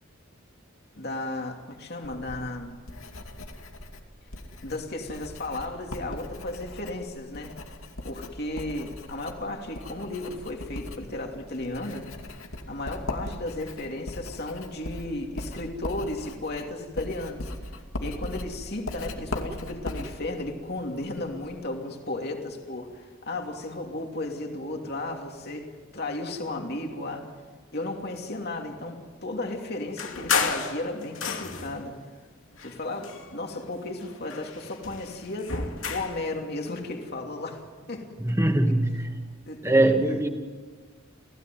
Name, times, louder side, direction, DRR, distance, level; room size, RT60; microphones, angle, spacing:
voice 1, 1.0-2.7 4.6-7.5 8.0-12.1 12.7-17.5 18.0-27.3 27.7-32.0 32.6-35.6 35.9-38.4 39.5-40.3, left 2 dB, 50° left, 2 dB, 2.9 m, -34 dB
Writing, 2.0-21.6, left 1 dB, 90° left, 2.6 m, -39 dB
sound 1, 30.0-31.8 32.5-33.7 34.0-36.2, left 5 dB, 75° left, 2.7 m, -31 dB
voice 2, 38.2-39.2 39.6-40.3, right 1 dB, 15° right, 4 dB, 2.3 m, -22 dB
30.0 x 16.0 x 9.5 m, 1.5 s
head